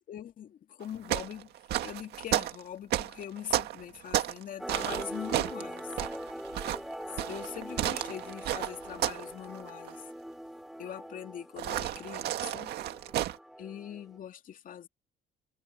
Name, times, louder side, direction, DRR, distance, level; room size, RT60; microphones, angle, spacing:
voice 1, 0.0-1.5 1.8-5.9 7.3-10.0 10.8-12.7 13.6-14.9, left 10 dB, 55° left, 2.4 m, -42 dB
sound 1, 0.8-4.4 4.7-9.3 9.5-9.9 11.6-13.4, right 13 dB, 75° right, 2.0 m, -32 dB
sound 2, 4.6-14.2, equal, ahead, 3.6 m, -43 dB
cardioid pair, 110°, 17 cm